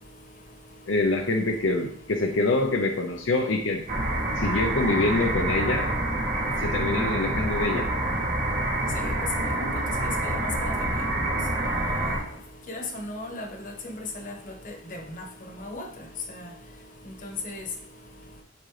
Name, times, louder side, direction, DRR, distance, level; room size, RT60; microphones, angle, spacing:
voice 1, 0.9-3.8 4.4-5.9 6.6-7.9, left 2 dB, 70° left, 2 dB, 0.6 m, -25 dB
sound 1, 3.9-12.2, right 1 dB, 40° right, 1.2 m, -27 dB
Bass guitar, 4.8-8.5, left 2 dB, 20° left, 0.8 m, -41 dB
voice 2, 8.9-10.7 11.6-12.1 12.7-15.2 15.6-15.9 16.3-16.5 17.2-17.6, left 2 dB, 40° left, 2 dB, 1.1 m, -37 dB
8.6 x 3.9 x 3.3 m, 0.75 s
head